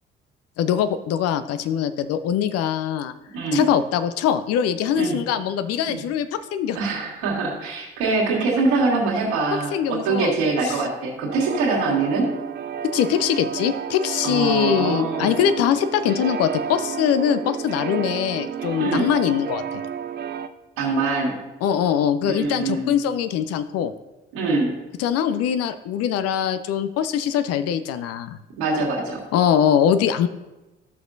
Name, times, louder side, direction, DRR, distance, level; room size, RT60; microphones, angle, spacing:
voice 1, 0.6-3.1 3.5-6.8 9.7-10.3 12.9-19.6 21.6-23.9 25.0-28.4 29.3-30.3, left 9 dB, 55° left, 12 dB, 0.6 m, -22 dB
voice 2, 3.3-3.6 4.9-5.2 5.9-6.0 6.7-12.3 14.2-15.5 18.8-19.1 20.8-21.4 22.2-22.9 24.3-24.7 28.6-29.2, right 3 dB, 70° right, -2 dB, 2.1 m, -23 dB
sound 1, 11.3-20.5, right 8 dB, 35° right, 0.5 m, -31 dB
14.0 x 6.0 x 2.6 m, 1.0 s
figure-of-eight pair, 45°, 30 cm